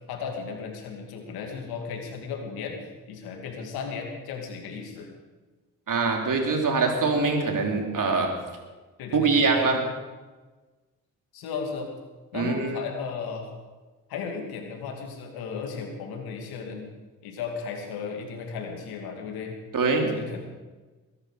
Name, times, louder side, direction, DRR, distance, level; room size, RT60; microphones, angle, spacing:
voice 1, 0.1-2.8 3.1-5.1 9.0-9.5 11.3-11.9 12.3-13.5 14.1-16.9 17.2-19.6 20.1-20.4, left 5 dB, 85° left, 2 dB, 2.5 m, -35 dB
voice 2, 5.9-8.3 9.1-9.8 12.3-12.8 19.7-20.1, right 4 dB, 60° right, 2 dB, 3.6 m, -23 dB
22.0 x 11.0 x 5.0 m, 1.3 s
hypercardioid pair, 45°, 36 cm